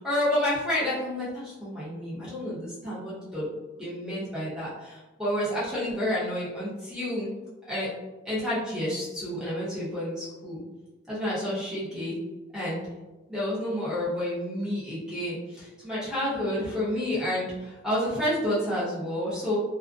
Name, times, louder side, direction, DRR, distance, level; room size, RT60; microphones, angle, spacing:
voice 1, 0.0-3.5 3.8-7.3 7.7-7.9 8.2-10.6 11.1-12.2 12.5-12.8 13.3-19.6, left 1 dB, 5° right, -9 dB, 0.8 m, -30 dB
2.4 x 2.1 x 2.4 m, 1.1 s
head